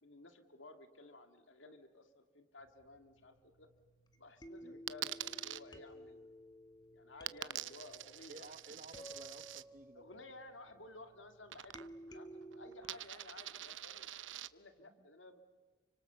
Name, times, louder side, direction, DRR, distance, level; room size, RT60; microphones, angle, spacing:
voice 1, 0.0-3.7 4.2-6.3 6.9-8.5 8.9-9.1 9.9-12.3 12.6-14.1 14.5-15.4, left 2 dB, 90° left, 8 dB, 2.0 m, -55 dB
sound 1, 2.6-13.1, right 2 dB, 60° left, 1.4 m, -74 dB
sound 2, 4.1-4.2 4.4-11.2 11.7-13.0, right 1 dB, 20° left, 2.2 m, -54 dB
Coin (dropping), 4.9-5.6 7.3-9.6 11.5-12.1 12.4-14.5, right 12 dB, 90° right, 0.9 m, -45 dB
voice 2, 8.3-10.0 14.8-15.0, right 2 dB, 45° right, 12 dB, 1.3 m, -55 dB
30.0 x 25.5 x 6.8 m, 1.5 s
head